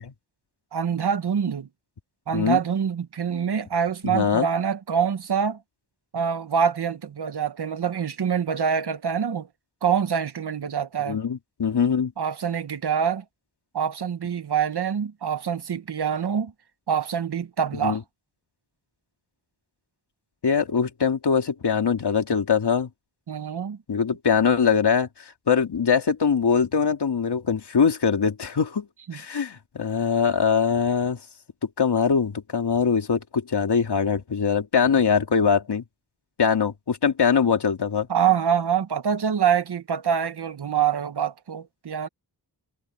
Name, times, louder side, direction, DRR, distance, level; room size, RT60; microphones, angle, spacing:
voice 1, 0.7-1.7 2.3-5.6 6.1-9.5 9.8-11.2 12.2-13.2 13.7-16.5 16.9-18.0 23.3-23.8 29.1-29.2 38.1-42.1, right 7 dB, 75° right, 1.3 m, -25 dB
voice 2, 4.0-4.5 11.1-12.1 17.8-18.0 20.4-22.9 23.9-25.1 25.5-28.9 29.1-31.2 31.8-35.8 36.4-38.1, left 6 dB, 80° left, 3.0 m, -22 dB
wide cardioid pair, 85°, 40 cm